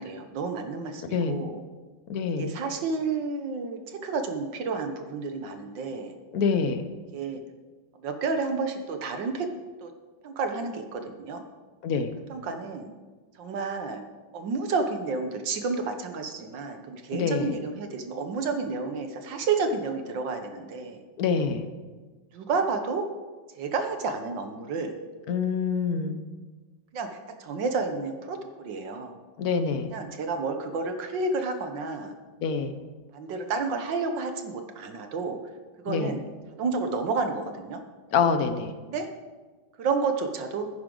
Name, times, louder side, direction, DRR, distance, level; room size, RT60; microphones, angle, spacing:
voice 1, 0.0-1.6 2.4-6.1 7.1-7.4 7.9-9.5 9.8-9.9 10.2-11.4 12.3-12.9 13.3-14.0 14.3-21.0 22.3-23.0 23.6-24.9 26.9-29.1 29.9-32.1 33.1-35.4 35.8-36.2 36.6-37.8 38.8-39.1 39.8-40.7, right 4 dB, 70° right, 6 dB, 1.6 m, -30 dB
voice 2, 2.1-2.5 6.3-6.9 11.8-12.1 17.1-17.5 21.2-21.7 25.3-26.2 29.4-29.9 32.4-32.8 35.9-36.2 38.1-38.7, left 5 dB, 60° left, 8 dB, 1.1 m, -26 dB
15.0 x 9.7 x 3.8 m, 1.3 s
omnidirectional pair, 2.2 m